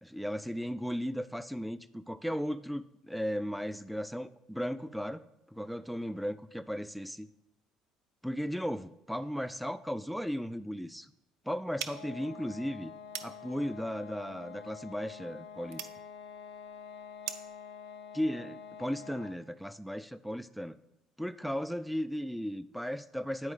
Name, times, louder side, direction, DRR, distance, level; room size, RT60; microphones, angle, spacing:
voice 1, 0.0-5.2 5.5-7.3 8.2-11.1 11.5-12.9 13.2-15.9 18.1-20.8 21.2-23.5, equal, ahead, 13 dB, 0.3 m, -36 dB
sound 1, 11.8-19.5, left 6 dB, 75° left, 0.5 m, -47 dB
sound 2, 11.8-17.6, right 10 dB, 70° right, 0.4 m, -46 dB
8.9 x 4.4 x 3.9 m, 0.86 s
figure-of-eight pair, 55°, 3 cm